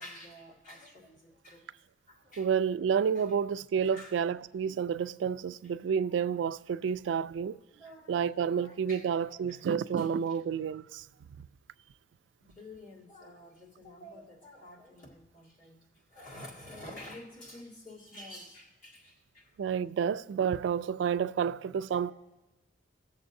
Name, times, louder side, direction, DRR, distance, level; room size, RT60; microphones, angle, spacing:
voice 1, 0.0-1.7 2.1-2.5 3.2-3.3 3.8-4.4 6.0-6.2 7.0-7.3 7.8-9.6 10.0-10.1 12.4-19.5 21.4-21.5 21.9-22.0, left 1 dB, 50° left, 2.1 m, -50 dB
voice 2, 2.4-7.6 8.1-11.1 11.3-11.5 19.6-22.1, right 7 dB, 85° right, 0.3 m, -30 dB
18.0 x 7.0 x 2.6 m
head